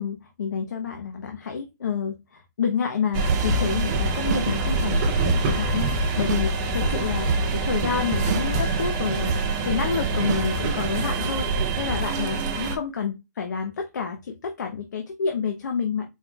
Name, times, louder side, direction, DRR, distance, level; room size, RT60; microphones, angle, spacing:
voice 1, 0.0-16.1, left 6 dB, 75° left, 4 dB, 0.8 m, -29 dB
sound 1, 3.1-12.8, right 3 dB, 25° right, 0.7 m, -25 dB
sound 2, 3.3-6.5 6.8-6.9 7.3-7.8 8.3-8.8 9.3-11.1, right 6 dB, 70° right, 0.4 m, -29 dB
4.5 x 3.8 x 2.3 m, 0.23 s
hypercardioid pair, 165°, 10 cm